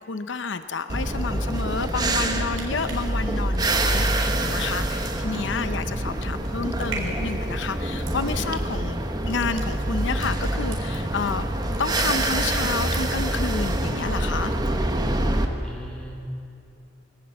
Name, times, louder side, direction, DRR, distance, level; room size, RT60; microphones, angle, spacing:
voice 1, 0.0-9.0 9.3-11.5 11.8-14.5, left 4 dB, 70° left, 10 dB, 0.7 m, -30 dB
sound 1, 0.9-15.5, right 1 dB, 20° right, 1.2 m, -26 dB
sound 2, 2.5-11.3 11.6-12.3 12.6-13.3 13.7-13.8, right 4 dB, 75° right, 4.1 m, -42 dB
voice 2, 15.6-16.3, equal, 5° left, -3 dB, 3.9 m, -39 dB
22.0 x 18.0 x 7.7 m, 2.6 s
head